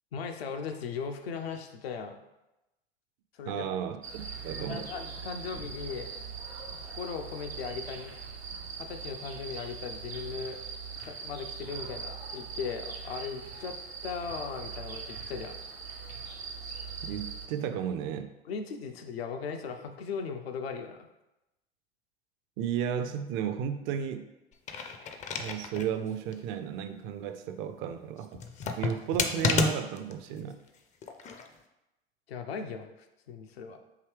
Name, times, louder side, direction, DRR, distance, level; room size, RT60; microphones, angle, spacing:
voice 1, 0.1-2.2 3.3-3.7 4.6-6.1 6.7-8.1 8.8-10.6 11.0-13.8 14.0-15.6 18.5-21.1 32.3-32.9 33.3-33.8, left 6 dB, 80° left, 5 dB, 0.5 m, -38 dB
voice 2, 3.5-4.9 17.0-18.3 22.6-24.3 25.4-28.4 28.8-30.6, right 8 dB, 45° right, 9 dB, 0.4 m, -34 dB
sound 1, 4.0-17.5, right 5 dB, 85° right, 0.7 m, -41 dB
sound 2, 24.5-25.9 26.3-26.4 28.3-30.1 31.0-31.5, left 5 dB, 25° left, 0.4 m, -30 dB
4.8 x 2.7 x 3.3 m, 0.95 s
figure-of-eight pair, 80°, 30 cm